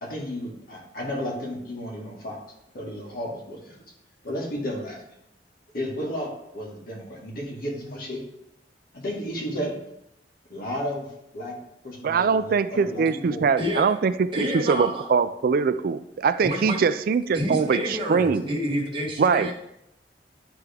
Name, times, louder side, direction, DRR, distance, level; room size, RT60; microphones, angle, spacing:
voice 1, 0.0-2.4 2.7-3.7 4.2-5.0 5.7-8.2 8.9-9.8 10.5-11.6 11.8-13.4, equal, 55° left, -2 dB, 1.7 m, -33 dB
voice 2, 12.0-18.5 19.2-19.5, right 5 dB, 55° right, 13 dB, 0.3 m, -22 dB
voice 3, 13.6-13.9 14.3-15.1 16.4-16.8 17.3-19.5, equal, 30° right, -2 dB, 1.4 m, -28 dB
10.0 x 3.5 x 3.4 m, 0.80 s
head